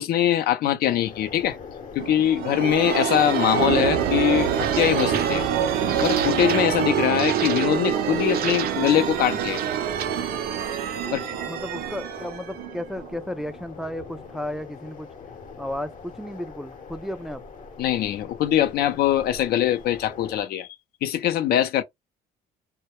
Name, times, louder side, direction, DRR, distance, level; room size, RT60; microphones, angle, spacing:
voice 1, 0.0-1.6 2.0-5.5 6.0-9.6 11.1-11.3 17.8-20.7 21.0-21.8, left 11 dB, 70° left, 0.5 m, -22 dB
sound 1, 0.9-20.4, left 5 dB, 50° left, 0.8 m, -43 dB
sound 2, 2.0-13.5, right 9 dB, 65° right, 0.5 m, -25 dB
voice 2, 11.0-15.1 15.6-17.4, left 1 dB, ahead, 0.3 m, -34 dB
2.1 x 2.1 x 2.9 m
cardioid pair, 110°, 17 cm